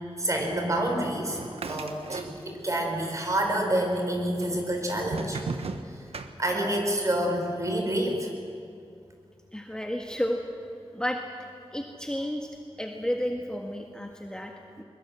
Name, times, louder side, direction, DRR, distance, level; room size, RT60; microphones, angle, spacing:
voice 1, 0.2-1.4 1.7-5.4 6.4-8.3, right 1 dB, 35° right, 2 dB, 4.9 m, -28 dB
sound 1, 1.3-2.8 3.0-3.8 4.4-6.9, right 4 dB, 85° right, 1.3 m, -37 dB
voice 2, 9.5-10.4 10.9-11.2 11.7-12.5 12.8-14.8, equal, 10° left, 1 dB, 1.7 m, -32 dB
22.0 x 22.0 x 7.7 m, 2.5 s
wide cardioid pair, 90°, 10 cm